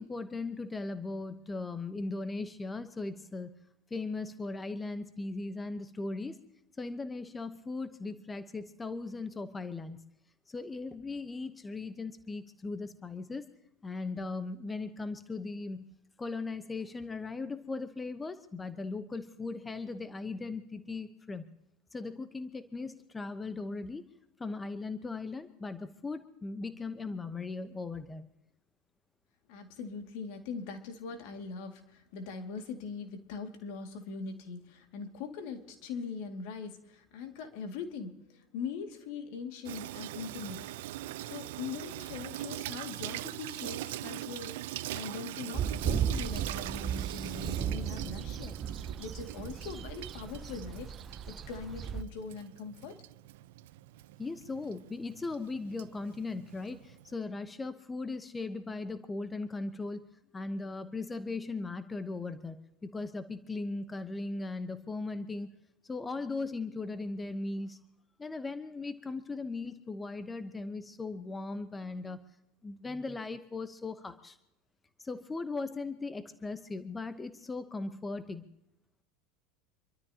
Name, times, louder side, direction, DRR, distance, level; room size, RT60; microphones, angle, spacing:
voice 1, 0.0-3.5 3.9-6.4 6.8-10.0 10.5-13.5 13.8-15.9 16.2-21.5 21.9-24.0 24.4-28.2 54.2-60.0 60.3-62.6 62.8-65.5 65.8-67.8 68.2-72.2 72.6-74.4 75.0-78.4, left 3 dB, 15° left, 10 dB, 1.0 m, -38 dB
voice 2, 29.5-41.0 41.3-48.6 49.0-51.0 51.3-53.0, left 5 dB, 65° left, 5 dB, 2.3 m, -42 dB
Water tap faucet / Sink (filling or washing), 39.6-57.1, right 15 dB, 75° right, 0.5 m, -42 dB
sound 1, 45.5-52.0, right 8 dB, 35° right, 0.7 m, -35 dB
27.0 x 13.0 x 2.9 m, 0.87 s
hypercardioid pair, 100°, 0 cm